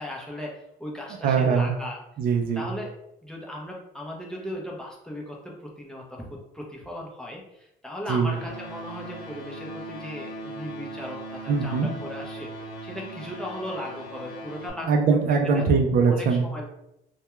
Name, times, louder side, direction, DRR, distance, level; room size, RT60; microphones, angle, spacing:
voice 1, 0.0-2.0 2.5-2.9 3.2-15.0 15.4-15.7 16.1-16.7, left 1 dB, 5° left, -2 dB, 0.6 m, -37 dB
voice 2, 1.2-1.7 2.2-2.7 8.1-8.3 11.5-11.9 14.8-16.4, right 5 dB, 60° right, 2 dB, 0.4 m, -22 dB
sound 1, 8.3-14.7, right 1 dB, 75° left, 0.6 m, -39 dB
2.2 x 2.2 x 3.0 m, 0.82 s
cardioid pair, 110°, 17 cm